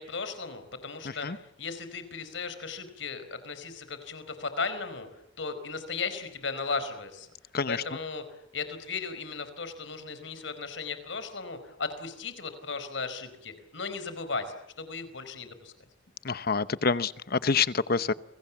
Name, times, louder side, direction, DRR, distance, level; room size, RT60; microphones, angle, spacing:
voice 1, 0.0-7.3 7.7-15.7, left 4 dB, 80° left, 4.6 m, -36 dB
voice 2, 16.2-18.1, left 5 dB, 55° left, 0.9 m, -27 dB
29.5 x 24.5 x 7.3 m
head